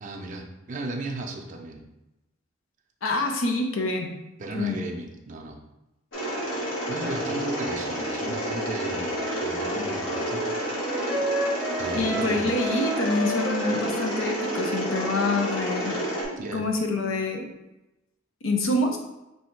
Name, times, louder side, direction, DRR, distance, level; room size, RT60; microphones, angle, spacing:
voice 1, 0.0-1.8 4.4-5.6 6.9-10.7 11.8-12.5 16.4-16.6, right 2 dB, 40° right, 1 dB, 0.5 m, -35 dB
voice 2, 3.0-4.1 4.5-4.8 11.9-16.0 16.3-17.5 18.4-19.0, left 2 dB, 85° left, 2 dB, 0.6 m, -26 dB
Mechanisms, 6.1-16.2, equal, 70° left, 1.3 m, -30 dB
Wind instrument woodwind instrument, 9.0-16.3, right 1 dB, 5° left, 0.8 m, -33 dB
3.3 x 2.7 x 4.4 m, 0.95 s
head